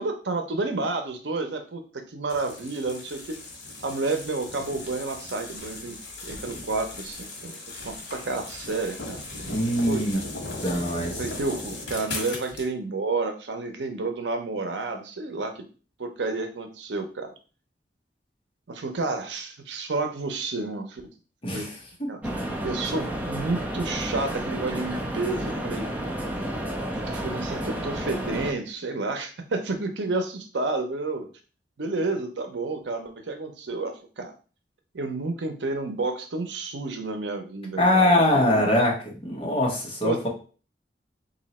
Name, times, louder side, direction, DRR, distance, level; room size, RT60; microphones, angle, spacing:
voice 1, 0.0-1.8 2.1-3.4 3.8-6.0 6.2-7.6 7.8-9.2 9.9-10.3 11.2-15.6 16.0-17.3 18.7-21.0 21.5-21.7 22.1-22.2 22.6-25.9 27.1-31.3 31.8-34.3 34.9-38.7 40.0-40.3, right 3 dB, 80° right, 6 dB, 0.7 m, -30 dB
sound 1, 2.3-12.7, left 2 dB, 80° left, 1.3 m, -38 dB
voice 2, 9.5-10.2 10.6-11.1 21.4-21.7 37.8-38.9 39.2-40.3, left 1 dB, 30° left, -2 dB, 1.1 m, -22 dB
sound 2, 22.2-28.5, right 1 dB, 10° right, 0.5 m, -31 dB
3.0 x 2.7 x 4.1 m, 0.37 s
head